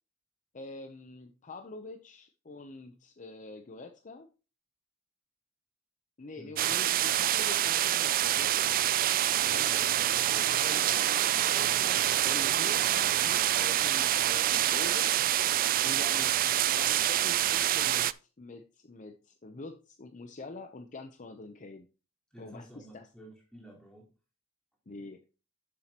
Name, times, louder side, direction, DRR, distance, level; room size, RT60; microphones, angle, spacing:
voice 1, 0.5-4.3 6.2-8.7 9.5-15.2 15.8-16.3 16.8-18.1 18.4-21.9 22.4-23.1 24.9-25.2, left 2 dB, 35° left, 7 dB, 0.7 m, -45 dB
voice 2, 6.4-6.7 9.4-9.8 22.3-24.1, right 1 dB, 5° left, -4 dB, 4.0 m, -52 dB
sound 1, 6.6-18.1, right 12 dB, 40° right, 0.3 m, -26 dB
11.0 x 7.5 x 2.9 m, 0.34 s
head